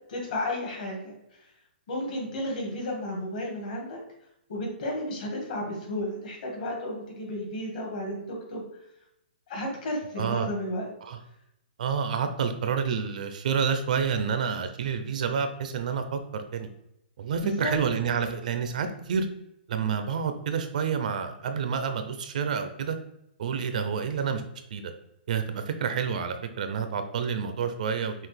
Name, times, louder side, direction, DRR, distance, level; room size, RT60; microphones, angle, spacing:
voice 1, 0.1-1.5 1.9-4.0 4.5-8.6 9.5-10.9 17.4-17.7, left 1 dB, 45° left, -1 dB, 1.6 m, -33 dB
voice 2, 10.2-10.5 11.0-11.2 11.8-16.7 17.2-19.3 19.7-23.0 23.4-24.4 24.7-24.9 25.3-28.1, right 6 dB, 45° right, 8 dB, 0.4 m, -29 dB
5.7 x 2.4 x 3.3 m, 0.82 s
hypercardioid pair, 170°, 6 cm